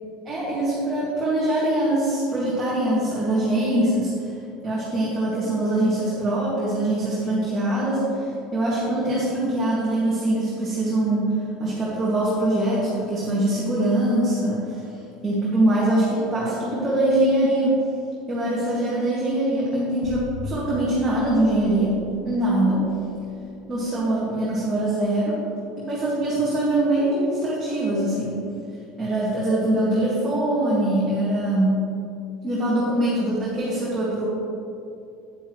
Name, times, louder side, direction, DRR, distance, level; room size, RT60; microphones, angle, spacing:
voice 1, 0.3-4.3 4.6-11.3 11.6-14.8 15.2-17.8 18.3-21.9 22.2-22.8 23.7-25.4 25.8-28.4 29.0-31.8 32.4-34.3, right 1 dB, 15° right, -9 dB, 2.0 m, -23 dB
sound 1, 20.0-24.1, left 3 dB, 90° left, 1.4 m, -39 dB
9.9 x 9.3 x 3.1 m, 2.7 s
cardioid pair, 155°, 0 cm